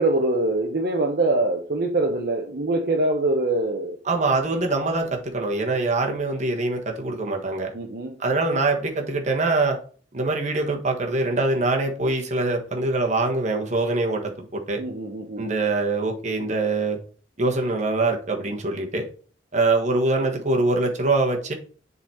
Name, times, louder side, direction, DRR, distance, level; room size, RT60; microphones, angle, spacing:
voice 1, 0.0-4.0 7.7-8.1 14.8-15.4, right 2 dB, 60° right, 0.9 m, -23 dB
voice 2, 4.0-7.7 8.2-9.8 10.1-14.8 15.4-17.0 17.4-19.1 19.5-21.5, right 2 dB, 40° right, 1.4 m, -23 dB
7.4 x 4.1 x 4.3 m
head